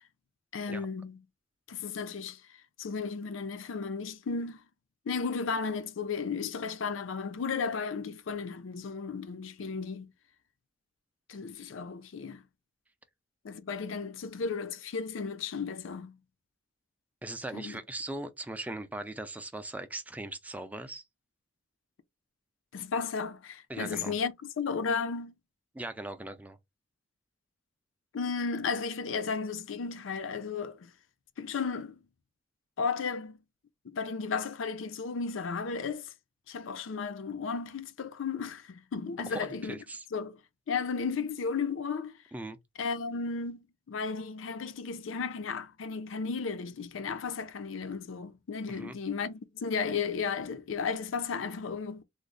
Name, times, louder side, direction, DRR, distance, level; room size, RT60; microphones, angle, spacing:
voice 1, 0.5-1.2 1.7-2.4 2.8-4.6 5.1-10.1 11.3-12.4 13.4-16.2 17.5-17.8 22.7-25.4 28.1-30.9 31.4-32.0 32.8-33.4 33.8-36.1 36.5-39.8 40.1-40.4 40.7-42.2 42.8-52.0, left 5 dB, 85° left, 0.5 m, -34 dB
voice 2, 17.2-21.0 23.7-24.1 25.7-26.6 39.3-40.0 42.3-42.6 48.7-49.0, right 2 dB, 10° right, 0.4 m, -39 dB
3.1 x 2.0 x 3.7 m
head